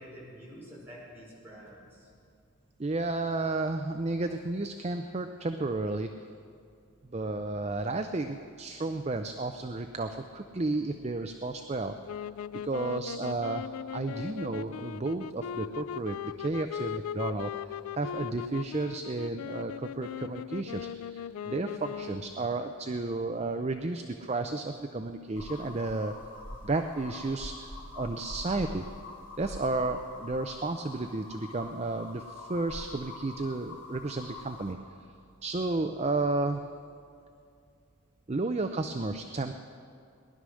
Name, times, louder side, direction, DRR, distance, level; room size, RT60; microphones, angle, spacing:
voice 1, 0.0-2.1, equal, 10° right, -7 dB, 5.0 m, -48 dB
voice 2, 2.8-6.1 7.1-12.0 12.6-26.1 26.6-28.8 29.4-34.8 35.4-36.6 38.3-39.5, right 2 dB, 30° right, 7 dB, 0.5 m, -32 dB
sound 1, 12.0-22.5, left 9 dB, 80° left, 0.3 m, -39 dB
sound 2, 25.3-34.7, left 2 dB, 60° left, 3.6 m, -44 dB
19.0 x 11.5 x 6.3 m, 2.4 s
head